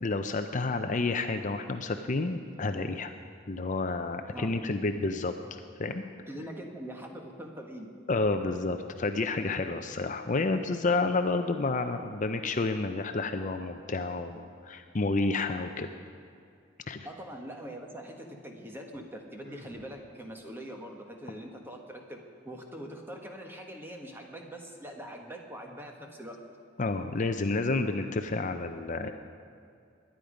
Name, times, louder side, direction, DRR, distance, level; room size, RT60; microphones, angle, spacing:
voice 1, 0.0-3.1 3.5-5.3 5.8-6.0 8.1-15.9 16.9-17.1 26.8-29.1, left 3 dB, 40° left, 7 dB, 0.6 m, -30 dB
voice 2, 4.3-4.8 6.3-7.9 17.0-22.2 22.4-26.4, equal, 10° right, 2 dB, 1.5 m, -43 dB
Sigh, 19.4-19.9, equal, 45° right, 1.6 m, -52 dB
21.5 x 10.5 x 5.1 m, 2.3 s
head